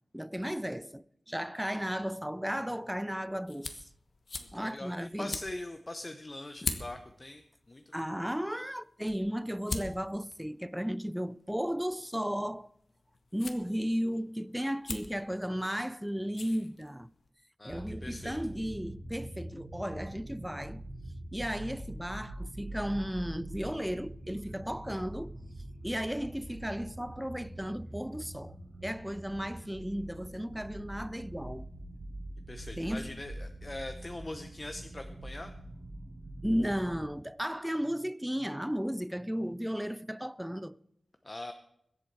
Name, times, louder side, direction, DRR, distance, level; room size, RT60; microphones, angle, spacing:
voice 1, 0.1-3.8 4.5-5.4 7.9-12.7 13.3-17.1 17.6-20.8 21.3-25.4 25.8-28.6 28.8-31.7 32.8-33.2 36.4-40.8, equal, 5° right, 0.4 m, -34 dB
sound 1, 2.5-17.3, left 4 dB, 70° left, 1.3 m, -45 dB
voice 2, 4.4-7.9 17.6-18.4 32.5-35.5 41.2-41.5, left 2 dB, 30° left, 0.8 m, -42 dB
sound 2, 17.7-37.1, right 1 dB, 85° right, 3.4 m, -44 dB
22.0 x 8.2 x 4.6 m
wide cardioid pair, 115°, 0 cm